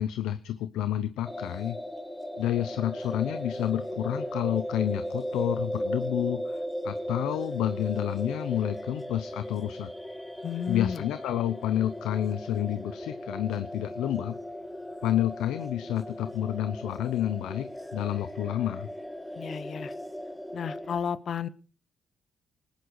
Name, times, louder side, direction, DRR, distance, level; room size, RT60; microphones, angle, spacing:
voice 1, 0.0-1.8 2.4-9.9 10.7-14.4 15.0-18.9, left 12 dB, 90° left, 12 dB, 0.8 m, -29 dB
sound 1, 1.2-21.0, equal, 5° left, 2.2 m, -37 dB
voice 2, 10.4-11.0 19.3-19.9 20.5-21.5, left 7 dB, 55° left, 17 dB, 0.8 m, -32 dB
19.5 x 10.5 x 4.8 m, 0.36 s
cardioid pair, 90°, 0 cm